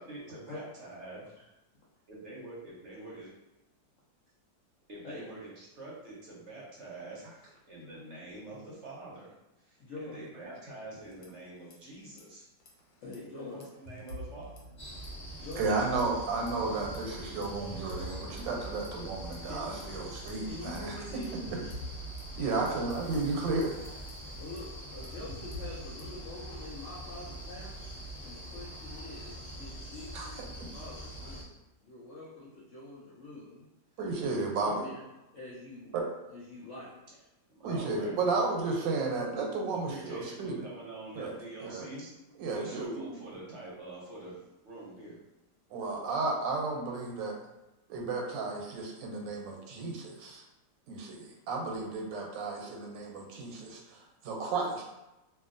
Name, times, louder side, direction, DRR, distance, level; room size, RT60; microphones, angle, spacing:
voice 1, 0.0-1.2 2.1-3.3 4.9-12.5 13.4-14.6 37.5-38.1 39.7-42.1 42.4-45.2 51.1-51.4, right 2 dB, 55° right, -6 dB, 0.9 m, -46 dB
voice 2, 9.8-10.2 13.0-13.7 15.4-15.7 19.4-19.8 20.4-21.6 22.3-22.6 24.3-27.8 28.2-31.5 31.8-33.7 34.4-35.0 35.3-35.9 36.3-37.2, left 2 dB, 70° left, -7 dB, 0.7 m, -45 dB
sound 1, 11.0-11.8 12.0-12.2 12.6-15.3 15.5-16.0 16.5-19.8 20.3-26.2, equal, 85° left, 1.3 m, -48 dB
sound 2, 14.8-31.4, right 1 dB, 15° left, 1.1 m, -44 dB
voice 3, 15.6-20.9 22.4-23.7 30.1-30.3 34.0-34.9 35.9-36.0 37.6-40.6 41.1-41.3 41.6-41.8 42.4-43.2 45.7-47.3 47.9-50.4 50.9-54.8, right 3 dB, 90° right, 0 dB, 1.3 m, -33 dB
2.8 x 2.6 x 2.5 m, 0.96 s
omnidirectional pair, 1.9 m